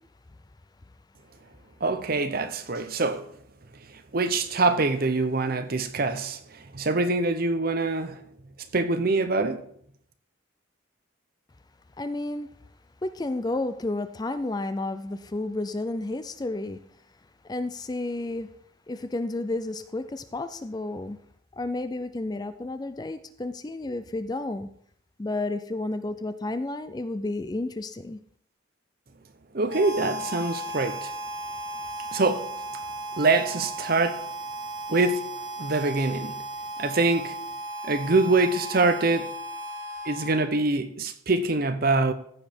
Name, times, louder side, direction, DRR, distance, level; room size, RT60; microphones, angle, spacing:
voice 1, 1.8-3.3 4.1-6.4 6.7-8.1 8.7-9.6 29.5-31.1 32.1-32.5 33.2-34.2 34.9-35.3 35.6-36.4 36.8-37.4 37.8-39.3 40.1-42.1, right 3 dB, 45° right, 0.8 m, -24 dB
voice 2, 12.0-12.5 13.0-16.8 17.4-18.5 18.9-21.2 21.5-24.7 25.2-28.2, left 2 dB, 20° left, 0.4 m, -31 dB
Harmonica, 29.7-40.7, right 1 dB, 65° right, 1.6 m, -36 dB
14.5 x 5.1 x 4.4 m
head